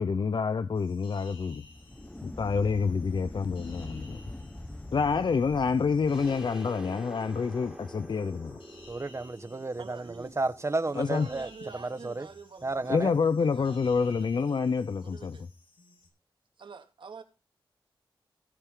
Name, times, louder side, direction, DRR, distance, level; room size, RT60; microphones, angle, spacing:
voice 1, 0.0-1.6 2.2-4.2 4.9-8.6 11.0-11.3 12.9-15.4, left 5 dB, 60° left, 0.7 m, -27 dB
sound 1, 0.7-16.1, left 2 dB, 85° left, 5.3 m, -56 dB
sound 2, 1.6-6.5, left 1 dB, 10° left, 1.2 m, -43 dB
sound 3, 6.1-11.6, right 1 dB, 5° right, 3.2 m, -48 dB
voice 2, 8.9-12.3 12.6-13.1, right 2 dB, 35° right, 1.2 m, -32 dB
voice 3, 9.8-10.4 10.8-14.6 15.0-15.5 16.6-17.2, right 5 dB, 70° right, 2.3 m, -47 dB
17.0 x 8.0 x 3.7 m
wide cardioid pair, 95°, 9 cm